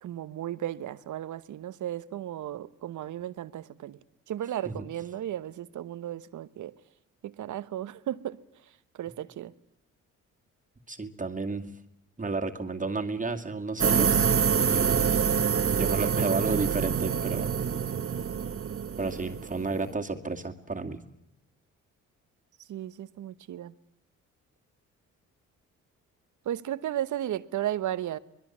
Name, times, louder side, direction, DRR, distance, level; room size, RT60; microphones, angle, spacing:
voice 1, 0.0-4.0 4.3-6.7 7.2-9.5 22.6-23.7 26.4-28.2, right 12 dB, 65° right, 1.1 m, -35 dB
voice 2, 10.9-11.7 12.2-14.3 14.6-15.3 15.7-17.6 19.0-21.0, right 3 dB, 25° right, 2.3 m, -32 dB
sound 1, 13.8-19.9, right 7 dB, 45° right, 1.4 m, -26 dB
24.5 x 21.0 x 7.4 m
supercardioid pair, 60°, 32 cm